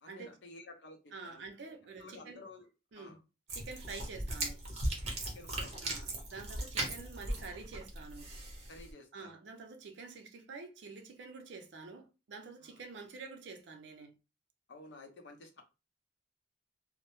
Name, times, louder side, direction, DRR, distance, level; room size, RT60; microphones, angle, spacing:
voice 1, 0.0-2.7 2.9-3.2 5.3-6.2 8.7-9.4 12.6-12.8 14.7-15.6, left 2 dB, 70° left, 0.6 m, -53 dB
voice 2, 1.1-2.4 2.9-3.2 3.5-4.7 5.8-8.3 9.1-14.1, right 4 dB, 75° right, 0.5 m, -48 dB
sound 1, 3.5-8.9, right 1 dB, 35° right, 0.7 m, -38 dB
2.1 x 2.0 x 2.9 m
head